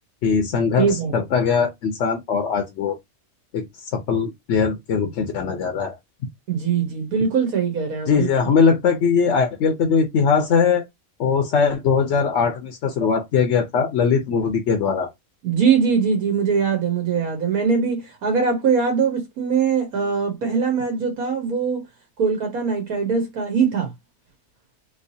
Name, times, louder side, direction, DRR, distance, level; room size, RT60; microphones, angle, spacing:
voice 1, 0.2-3.0 3.5-3.7 3.9-6.0 8.1-10.8 11.2-15.1, left 5 dB, 60° left, 0.8 m, -20 dB
voice 2, 0.8-1.1 6.5-8.3 15.4-21.8 22.2-23.9, right 6 dB, 70° right, 1.4 m, -21 dB
3.3 x 3.1 x 2.6 m
omnidirectional pair, 1.6 m